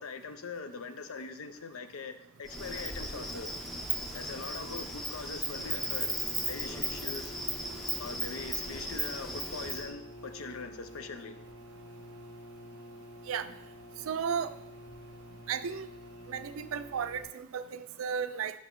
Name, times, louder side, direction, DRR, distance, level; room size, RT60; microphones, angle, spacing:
voice 1, 0.0-2.1 2.4-3.5 4.1-6.2 6.5-7.3 8.0-11.3, left 4 dB, 85° left, 9 dB, 0.6 m, -42 dB
Insect, 2.5-9.9, right 1 dB, ahead, 0.6 m, -36 dB
sound 1, 5.5-17.2, equal, 55° left, 1.5 m, -49 dB
voice 2, 14.1-14.5 15.5-15.9 16.3-18.5, right 7 dB, 80° right, 11 dB, 0.4 m, -34 dB
5.5 x 4.9 x 3.8 m, 0.80 s
head